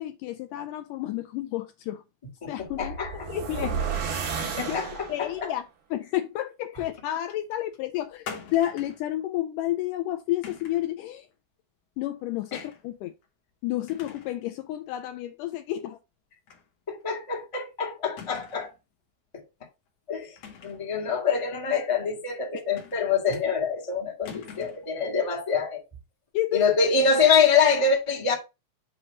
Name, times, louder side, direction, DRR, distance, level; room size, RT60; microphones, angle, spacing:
voice 1, 0.0-2.0 2.5-3.0 3.3-3.9 4.7-4.8 5.1-5.7 5.9-11.3 12.0-13.1 13.6-16.0 26.3-26.7, left 14 dB, 80° left, 1.9 m, -30 dB
sound 1, 2.6-5.4, right 6 dB, 85° right, 3.8 m, -32 dB
voice 2, 2.8-3.7 4.6-4.9 5.2-5.5 12.5-12.6 16.9-18.7 19.3-19.4 20.1-20.3 20.6-25.8 26.5-28.3, left 5 dB, 15° left, 1.0 m, -25 dB
sound 2, 8.3-9.1 10.4-10.9 12.5-12.8 13.2-13.3 13.9-14.4 14.7-14.8 16.5-16.7 17.0-17.1 18.2-18.8 20.4-20.9 22.8-23.3 24.2-24.9, left 6 dB, 60° left, 2.0 m, -43 dB
7.7 x 3.0 x 6.0 m
omnidirectional pair, 4.1 m